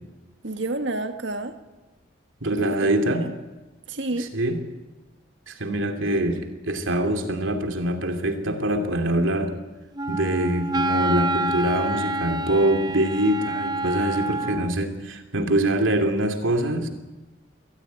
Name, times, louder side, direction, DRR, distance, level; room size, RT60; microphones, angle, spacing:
voice 1, 0.4-1.6 2.5-3.3 3.9-4.3, right 2 dB, 70° right, 7 dB, 1.7 m, -30 dB
voice 2, 2.4-3.2 4.3-4.6 5.5-9.5 10.1-16.9, right 1 dB, 85° right, 5 dB, 2.8 m, -24 dB
Wind instrument woodwind instrument, 10.0-14.8, right 2 dB, 20° right, 0.6 m, -27 dB
22.5 x 15.0 x 9.4 m, 1.1 s
head